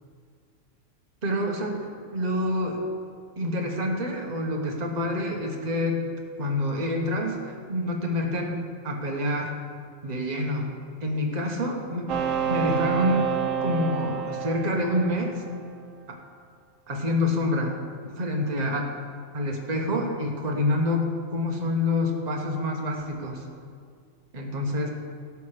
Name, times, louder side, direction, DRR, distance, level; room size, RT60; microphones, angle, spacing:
voice 1, 1.2-2.8 3.4-6.0 6.4-8.6 8.8-9.5 10.0-10.7 11.0-12.2 12.5-15.4 16.1-16.2 16.9-17.8 18.2-18.9 19.3-21.1 21.3-23.4 24.3-24.9, left 1 dB, 30° right, 0 dB, 1.3 m, -27 dB
sound 1, 12.1-15.8, right 8 dB, 70° right, 1.1 m, -29 dB
17.0 x 6.0 x 5.0 m, 2.1 s
omnidirectional pair, 1.4 m